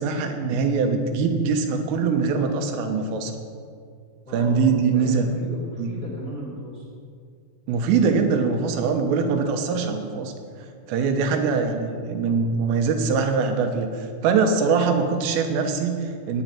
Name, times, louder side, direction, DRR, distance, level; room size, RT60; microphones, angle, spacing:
voice 1, 0.0-3.3 4.3-5.3 5.8-5.9 7.7-10.3 10.9-16.4, right 5 dB, 85° right, 5 dB, 3.7 m, -22 dB
voice 2, 4.3-6.8 11.1-11.4, right 1 dB, 15° left, -4 dB, 2.4 m, -36 dB
18.5 x 9.3 x 5.9 m, 2.3 s
omnidirectional pair, 5.8 m